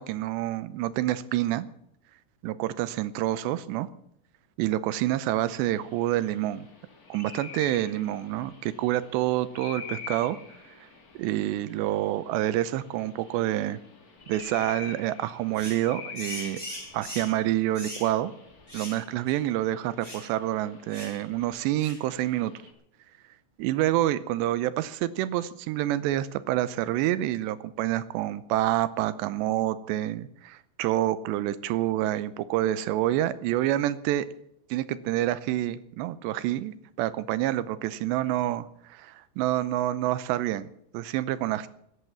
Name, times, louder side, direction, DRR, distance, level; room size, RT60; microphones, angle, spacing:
voice 1, 0.0-1.7 2.4-3.9 4.6-6.7 7.1-10.4 10.7-10.9 11.2-13.8 14.3-16.6 16.9-18.3 18.7-22.5 23.6-34.3 34.7-41.7, right 14 dB, 80° right, 16 dB, 2.8 m, -28 dB
sound 1, 5.5-22.7, left 6 dB, 35° left, 1.5 m, -46 dB
sound 2, 15.5-15.8 16.1-17.4 17.7-18.1 18.7-19.0 19.3-19.4 20.0-20.3 20.9-21.2 21.8-22.0, equal, 10° right, 6.4 m, -40 dB
15.0 x 11.5 x 7.0 m, 0.72 s
omnidirectional pair, 5.2 m